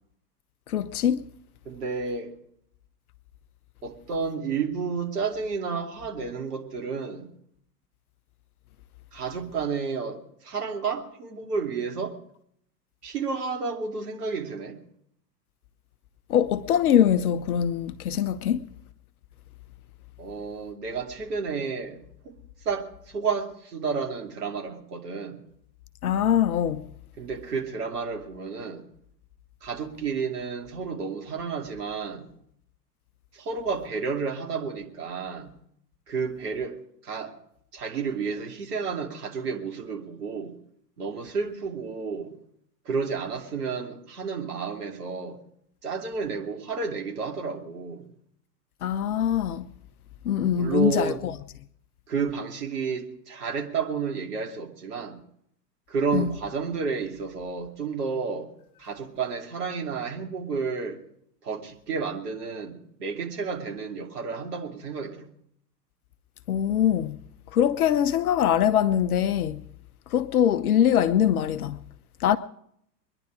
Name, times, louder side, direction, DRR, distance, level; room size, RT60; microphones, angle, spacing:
voice 1, 0.7-1.2 16.3-18.6 26.0-26.8 48.8-49.7 50.2-51.1 56.1-56.3 66.5-67.2 67.5-69.6 70.1-71.8 72.2-72.4, left 9 dB, 60° left, 0.8 m, -23 dB
voice 2, 1.6-2.3 3.8-7.3 9.1-12.2 13.0-14.8 20.2-25.4 27.2-28.9 29.6-32.3 33.3-35.5 36.1-37.4 37.7-40.6 41.0-42.3 42.8-45.4 45.8-48.1 50.5-51.2 52.1-55.2 55.9-58.5 58.8-61.0 61.4-65.3, right 5 dB, 65° right, 2.7 m, -31 dB
23.0 x 11.0 x 4.9 m
figure-of-eight pair, 95°, 49 cm